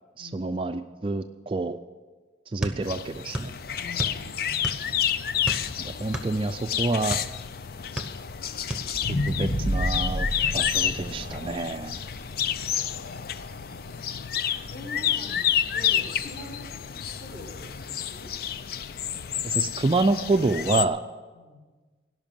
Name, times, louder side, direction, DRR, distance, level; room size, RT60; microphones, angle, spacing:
voice 1, 0.2-1.8 2.5-3.5 5.8-7.2 9.3-10.3 10.5-12.0 19.4-21.0, right 3 dB, 30° right, 8 dB, 0.4 m, -27 dB
sound 1, 2.6-3.6 3.8-5.0 5.4-7.3 7.8-8.4 8.7-8.9, right 1 dB, 5° right, 1.0 m, -32 dB
sound 2, 2.8-20.9, left 9 dB, 55° left, 0.4 m, -30 dB
voice 2, 3.8-4.8 13.7-15.4 15.7-16.7 17.1-18.3 21.3-21.6, left 1 dB, 35° left, -3 dB, 3.6 m, -45 dB
sound 3, 8.9-13.2 13.7-13.8, equal, 75° left, 1.4 m, -30 dB
17.5 x 5.9 x 9.0 m, 1.4 s
head